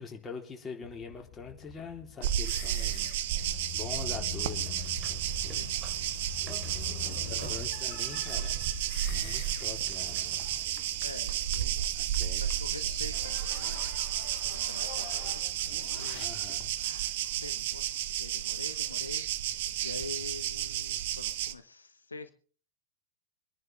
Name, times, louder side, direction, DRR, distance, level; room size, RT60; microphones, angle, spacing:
voice 1, 0.0-5.6 7.0-8.7 9.0-10.5 11.9-12.4 16.1-16.7, left 5 dB, 15° left, 4.0 m, -44 dB
sound 1, 0.8-16.7, left 8 dB, 45° left, 1.2 m, -45 dB
sound 2, 2.2-21.5, right 12 dB, 55° right, 0.9 m, -32 dB
sound 3, 4.4-10.6, right 3 dB, 25° right, 2.9 m, -47 dB
voice 2, 5.4-6.3 7.0-7.6 10.5-10.7 11.0-11.7 12.3-13.8 14.4-16.3 16.8-22.3, left 3 dB, 80° left, 1.0 m, -46 dB
25.5 x 11.0 x 3.7 m
figure-of-eight pair, 90°, 0 cm